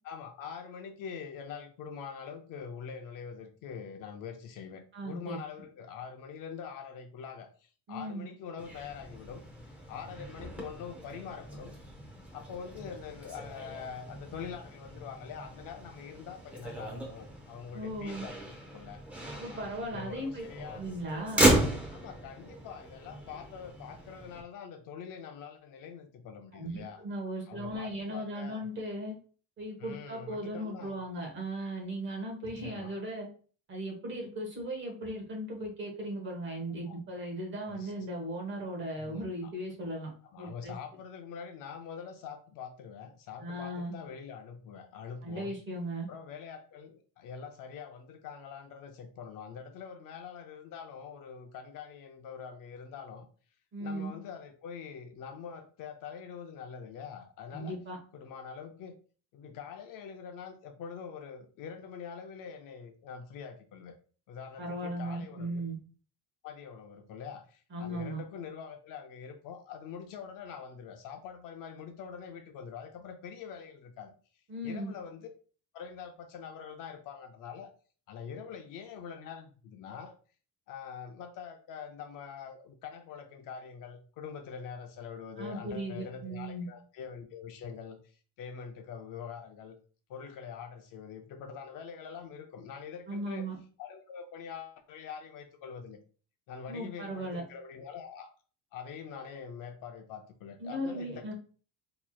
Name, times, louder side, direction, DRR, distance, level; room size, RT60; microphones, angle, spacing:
voice 1, 0.0-9.4 9.9-11.7 12.3-19.0 19.3-19.6 19.9-20.8 21.9-27.0 27.5-28.7 29.8-31.0 32.4-32.9 36.9-37.0 37.6-37.9 39.0-39.5 40.3-45.5 46.1-53.3 53.8-57.8 58.1-58.9 59.3-64.0 64.3-65.6 66.4-74.1 74.6-75.3 75.7-77.7 78.1-80.2 80.7-88.0 88.4-89.8 90.1-93.5 93.8-96.0 96.5-98.3 98.7-101.3, left 7 dB, 55° left, 6 dB, 0.6 m, -44 dB
voice 2, 4.9-5.4 7.9-8.2 17.7-18.3 19.4-20.5 20.8-21.6 26.5-29.1 29.6-33.3 33.7-40.1 40.4-40.7 43.4-43.9 45.2-46.1 53.7-54.1 57.5-58.0 64.6-65.8 67.7-68.2 74.5-74.9 85.4-86.7 93.1-93.6 96.7-97.4 100.6-101.3, right 1 dB, 30° right, 1 dB, 1.1 m, -37 dB
Motor vehicle (road), 8.6-24.4, right 1 dB, 5° right, 0.6 m, -35 dB
4.3 x 3.0 x 2.2 m, 0.40 s
cardioid pair, 165°, 39 cm